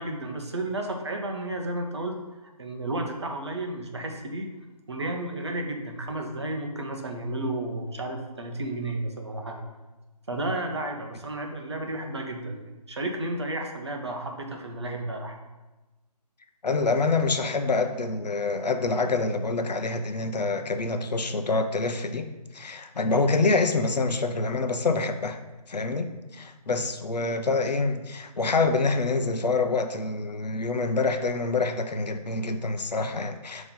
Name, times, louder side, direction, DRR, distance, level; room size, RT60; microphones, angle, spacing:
voice 1, 0.0-4.5 4.9-9.6 10.3-12.6 12.9-15.4, right 1 dB, 40° right, 2 dB, 0.8 m, -32 dB
voice 2, 16.6-22.3 22.5-25.4 25.7-33.7, left 3 dB, 85° left, 7 dB, 0.7 m, -26 dB
9.1 x 3.1 x 3.9 m, 1.1 s
hypercardioid pair, 175°, 21 cm